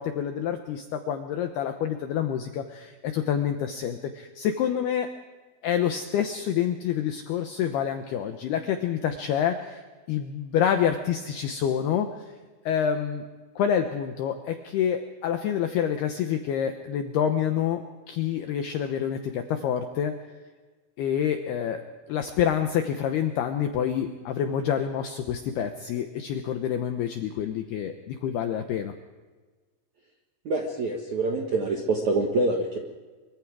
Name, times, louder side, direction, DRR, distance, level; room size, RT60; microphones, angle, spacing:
voice 1, 0.0-5.1 5.6-9.8 10.1-12.1 12.7-13.2 13.6-20.1 21.0-21.8 22.1-28.9, left 9 dB, 80° left, 6 dB, 2.3 m, -27 dB
voice 2, 30.5-32.8, right 2 dB, 65° right, 1 dB, 1.8 m, -26 dB
24.5 x 23.5 x 4.8 m, 1.3 s
omnidirectional pair, 5.9 m